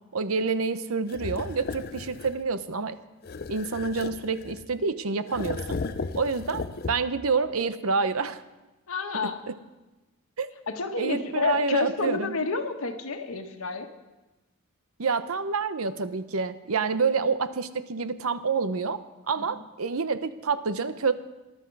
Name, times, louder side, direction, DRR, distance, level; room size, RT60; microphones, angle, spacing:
voice 1, 0.1-3.0 3.5-5.8 6.1-8.4 9.2-9.5 10.4-10.5 11.0-12.4 15.0-21.1, right 4 dB, 75° right, 12 dB, 0.8 m, -28 dB
sound 1, 1.1-2.4 3.2-4.8 5.3-7.3, left 4 dB, 45° left, 0.5 m, -35 dB
voice 2, 8.9-9.4 10.7-13.9 19.4-19.6, left 4 dB, 75° left, 6 dB, 1.4 m, -30 dB
19.5 x 11.5 x 4.7 m, 1.1 s
head